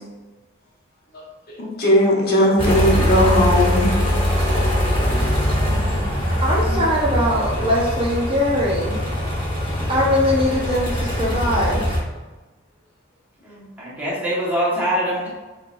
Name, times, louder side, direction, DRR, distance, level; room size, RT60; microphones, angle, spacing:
voice 1, 1.8-3.9, equal, 50° left, -3 dB, 1.0 m, -17 dB
sound 1, 2.6-12.0, equal, 25° left, 1.2 m, -22 dB
voice 2, 6.4-9.0 9.9-11.8, left 1 dB, 25° right, -4 dB, 0.7 m, -21 dB
voice 3, 9.7-10.2 13.4-15.3, equal, 10° right, -8 dB, 1.4 m, -25 dB
5.0 x 3.3 x 2.5 m, 1.2 s
head